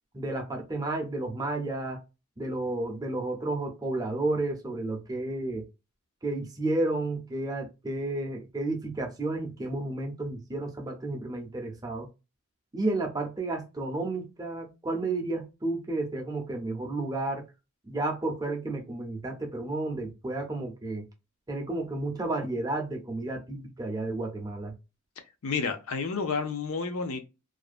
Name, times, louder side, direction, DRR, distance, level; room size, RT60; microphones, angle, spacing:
voice 1, 0.1-2.0 2.4-5.6 6.2-12.1 12.7-17.5 17.9-21.0 21.5-24.8, right 2 dB, 15° right, 0.5 m, -32 dB
voice 2, 25.4-27.2, left 5 dB, 75° left, 0.5 m, -30 dB
2.5 x 2.1 x 2.3 m
head